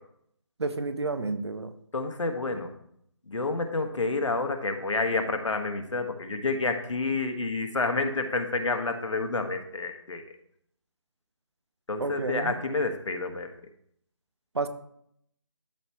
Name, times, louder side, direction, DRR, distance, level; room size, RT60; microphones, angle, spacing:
voice 1, 0.6-1.7 12.0-12.6 14.5-14.7, right 3 dB, 60° right, 10 dB, 0.8 m, -30 dB
voice 2, 1.9-2.7 3.3-10.2 11.9-13.5, left 3 dB, 80° left, 5 dB, 1.4 m, -29 dB
12.5 x 4.4 x 3.0 m, 0.70 s
figure-of-eight pair, 175°, 16 cm